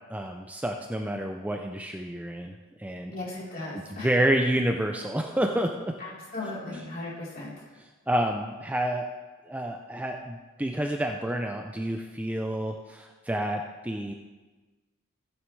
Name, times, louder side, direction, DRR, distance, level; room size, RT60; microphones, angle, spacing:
voice 1, 0.1-2.5 2.8-3.1 4.0-6.0 8.1-9.1 9.5-14.1, right 1 dB, 5° right, 3 dB, 0.4 m, -29 dB
voice 2, 3.1-4.1 6.0-7.6, left 2 dB, 45° left, -7 dB, 3.6 m, -37 dB
14.5 x 9.1 x 3.2 m, 1.3 s
head